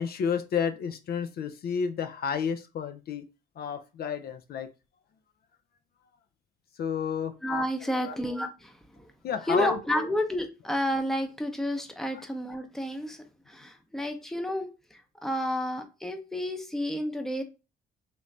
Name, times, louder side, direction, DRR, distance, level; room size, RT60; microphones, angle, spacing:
voice 1, 0.0-3.2 3.6-4.7 6.8-7.4 7.8-8.2 9.2-9.8 12.2-12.3, left 7 dB, 60° left, 9 dB, 0.4 m, -31 dB
voice 2, 7.4-9.1 9.5-17.4, left 1 dB, ahead, 6 dB, 0.6 m, -31 dB
3.2 x 3.0 x 2.5 m, 0.29 s
cardioid pair, 85°, 18 cm